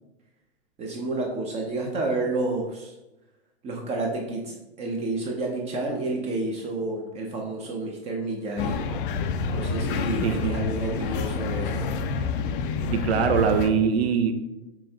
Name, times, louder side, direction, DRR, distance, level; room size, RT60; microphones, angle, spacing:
voice 1, 0.8-2.9 3.6-8.9 9.5-11.9, right 2 dB, 20° right, 0 dB, 0.5 m, -30 dB
sound 1, 8.6-13.7, left 5 dB, 50° left, 0.5 m, -28 dB
voice 2, 10.2-10.5 12.9-14.3, right 7 dB, 70° right, 8 dB, 0.7 m, -22 dB
5.5 x 3.3 x 2.8 m, 0.98 s
hypercardioid pair, 120°, 33 cm